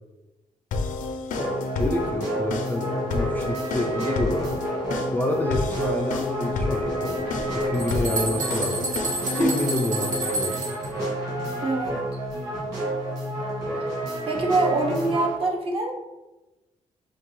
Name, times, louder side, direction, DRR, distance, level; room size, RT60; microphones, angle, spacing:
sound 1, 0.7-10.3, left 3 dB, 85° left, 0.4 m, -30 dB
sound 2, 1.3-15.4, right 1 dB, 25° right, 1.4 m, -30 dB
voice 1, 1.7-4.5 5.1-7.3 7.6-8.9 9.3-10.7, left 1 dB, 15° left, 1 dB, 0.3 m, -28 dB
sound 3, 7.3-10.9, right 3 dB, 80° right, 1.2 m, -30 dB
voice 2, 11.6-11.9 13.8-13.9 14.2-15.9, right 3 dB, 45° right, 1 dB, 0.7 m, -24 dB
5.9 x 2.2 x 3.0 m, 1.1 s
wide cardioid pair, 160°, 13 cm